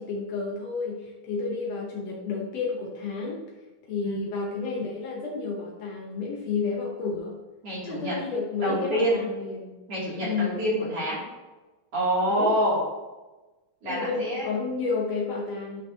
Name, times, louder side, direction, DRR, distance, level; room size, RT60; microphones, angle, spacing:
voice 1, 0.0-3.5 3.8-7.4 7.8-9.8 10.2-10.5 12.3-12.6 13.8-15.8, left 4 dB, 85° left, -1 dB, 1.4 m, -31 dB
voice 2, 7.6-8.1 8.6-9.2 9.9-11.2 11.9-12.8 13.8-14.5, equal, 45° right, -6 dB, 3.1 m, -26 dB
10.5 x 6.2 x 2.7 m, 1.1 s
omnidirectional pair, 4.2 m